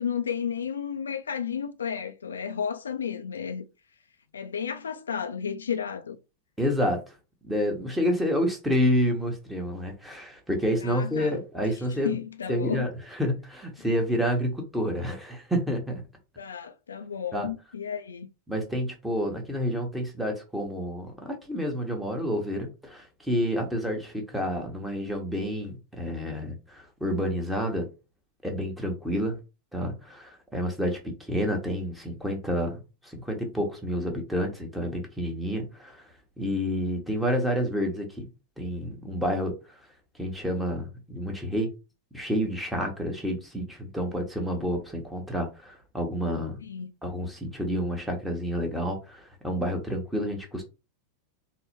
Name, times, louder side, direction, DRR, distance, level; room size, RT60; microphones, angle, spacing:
voice 1, 0.0-3.6 4.3-6.2 10.8-11.4 12.0-12.9 16.4-18.3 46.6-46.9, left 7 dB, 70° left, 0.3 m, -32 dB
voice 2, 6.6-7.1 7.4-12.2 12.5-16.0 17.3-17.5 18.5-27.9 28.4-29.4 29.7-36.1 36.4-38.3 38.6-39.8 40.2-41.7 42.1-46.6 47.0-50.6, equal, 5° right, 1.0 m, -29 dB
3.8 x 2.1 x 2.9 m
figure-of-eight pair, 90°, 0 cm